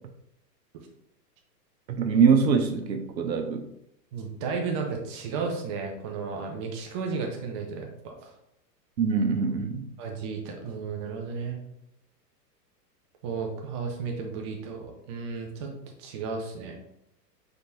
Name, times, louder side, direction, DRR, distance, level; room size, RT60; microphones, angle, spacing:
voice 1, 1.9-3.6 9.0-9.9, right 6 dB, 90° right, 6 dB, 0.8 m, -23 dB
voice 2, 4.1-8.1 10.0-11.6 13.2-15.7 16.0-16.7, right 5 dB, 20° right, 1 dB, 0.3 m, -33 dB
5.1 x 3.4 x 2.8 m, 0.78 s
hypercardioid pair, 115°, 50 cm